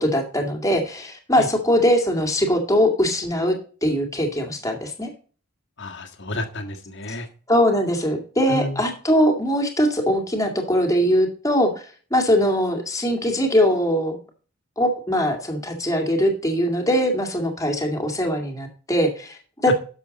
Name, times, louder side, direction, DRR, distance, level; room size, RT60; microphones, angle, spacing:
voice 1, 0.0-3.6 3.8-5.1 7.5-11.7 12.1-14.2 14.8-19.7, equal, 15° left, 4 dB, 2.1 m, -21 dB
voice 2, 5.8-7.3 8.5-8.8 19.7-19.8, left 2 dB, 55° left, 5 dB, 1.8 m, -30 dB
12.0 x 6.9 x 4.0 m, 0.39 s
head